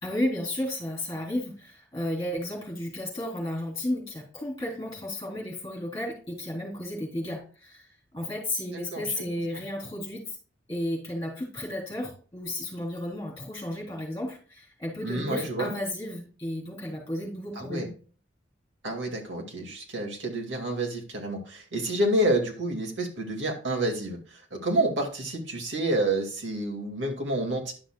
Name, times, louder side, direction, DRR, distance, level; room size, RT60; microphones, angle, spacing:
voice 1, 0.0-7.9 8.1-10.4 10.7-18.0, left 1 dB, 15° left, -2 dB, 3.5 m, -33 dB
voice 2, 8.9-9.3 9.5-9.6 15.0-15.7 17.6-17.9 18.8-27.7, right 1 dB, 70° right, 1 dB, 2.3 m, -29 dB
11.0 x 6.2 x 2.3 m, 0.39 s
head